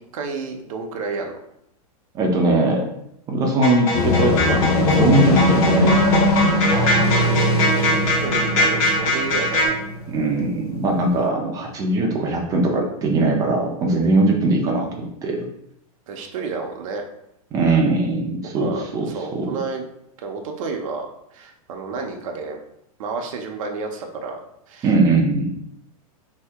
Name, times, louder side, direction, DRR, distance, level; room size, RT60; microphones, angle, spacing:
voice 1, 0.1-1.4 6.7-7.9 8.2-9.8 16.1-17.0 18.6-19.8 20.2-22.6 23.0-24.9, right 4 dB, 60° right, 3 dB, 0.6 m, -31 dB
voice 2, 2.1-2.9 3.3-6.2 10.1-15.5 17.5-19.6 24.8-25.5, right 2 dB, 20° right, 1 dB, 0.5 m, -20 dB
sound 1, 3.6-9.7, left 1 dB, 65° left, 1.4 m, -22 dB
sound 2, 3.9-10.8, left 1 dB, 85° left, 0.8 m, -21 dB
2.8 x 2.7 x 3.4 m, 0.75 s
supercardioid pair, 150°, 19 cm